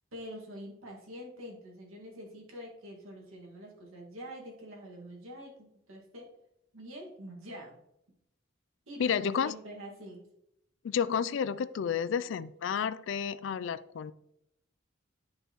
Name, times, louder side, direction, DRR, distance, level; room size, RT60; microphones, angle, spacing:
voice 1, 0.1-6.3 6.7-7.8 8.9-10.2, equal, 90° right, -1 dB, 1.9 m, -45 dB
voice 2, 9.0-9.5 10.8-14.1, left 7 dB, 65° left, 16 dB, 0.3 m, -31 dB
9.9 x 5.3 x 3.0 m, 0.82 s
head